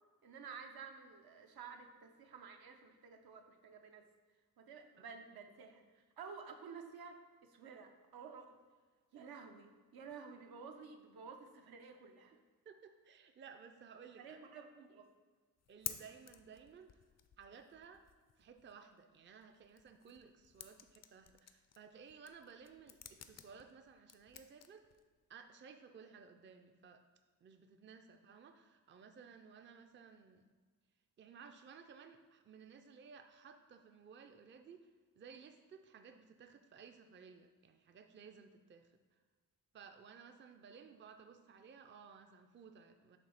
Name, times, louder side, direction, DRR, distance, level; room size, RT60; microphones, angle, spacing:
voice 1, 0.2-4.1 4.6-8.6 9.1-12.4 14.2-15.1, right 5 dB, 80° right, 4 dB, 0.7 m, -52 dB
voice 2, 12.7-14.4 15.7-17.0 17.4-18.1 18.4-24.8 25.3-27.0 27.4-30.4 31.2-34.9 35.2-38.9 39.7-43.2, right 6 dB, 35° right, 7 dB, 0.4 m, -57 dB
sound 1, 15.6-25.4, left 8 dB, 45° left, 0.4 m, -53 dB
7.4 x 2.7 x 5.7 m, 1.5 s
wide cardioid pair, 115°, 36 cm